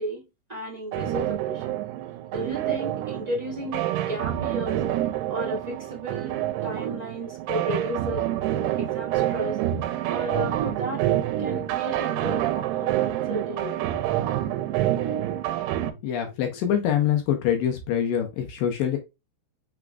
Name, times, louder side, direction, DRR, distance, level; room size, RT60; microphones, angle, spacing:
voice 1, 0.0-1.8 2.3-4.8 5.3-6.4 6.6-8.3 8.8-9.6 10.1-11.1 11.4-13.9, equal, 20° right, 1.1 m, -34 dB
sound 1, 0.9-15.9, right 13 dB, 80° right, 2.5 m, -27 dB
voice 2, 16.0-19.0, left 9 dB, 75° left, 2.2 m, -25 dB
6.0 x 3.7 x 2.3 m
omnidirectional pair, 4.8 m